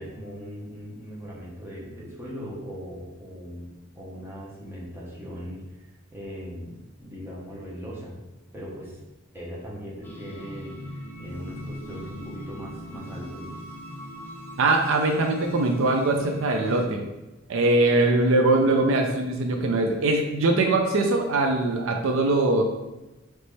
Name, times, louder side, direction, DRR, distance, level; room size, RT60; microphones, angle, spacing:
voice 1, 0.0-8.2 8.5-9.0 9.3-13.5, equal, 10° right, -6 dB, 1.0 m, -39 dB
sound 1, 10.0-16.8, equal, 10° left, 0.7 m, -39 dB
voice 2, 14.6-17.0 17.5-22.6, right 2 dB, 70° right, 3 dB, 0.5 m, -22 dB
4.1 x 3.2 x 3.3 m, 1.0 s
head